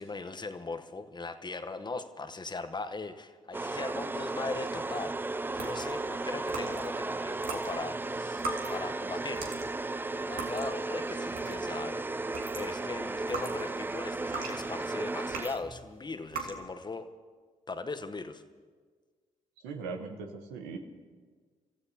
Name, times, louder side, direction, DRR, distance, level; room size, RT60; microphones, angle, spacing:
voice 1, 0.0-5.2 5.5-9.5 10.1-17.1 17.7-18.4, left 3 dB, 30° left, 9 dB, 1.0 m, -39 dB
sound 1, 3.5-15.9, right 2 dB, 15° right, 0.3 m, -35 dB
sound 2, 5.5-7.0 7.4-11.8 12.2-15.7 16.2-16.6, right 4 dB, 75° right, 2.0 m, -40 dB
voice 2, 19.6-20.8, right 4 dB, 90° right, 5 dB, 1.2 m, -39 dB
28.0 x 14.0 x 2.9 m, 1.5 s
hypercardioid pair, 50°, 15 cm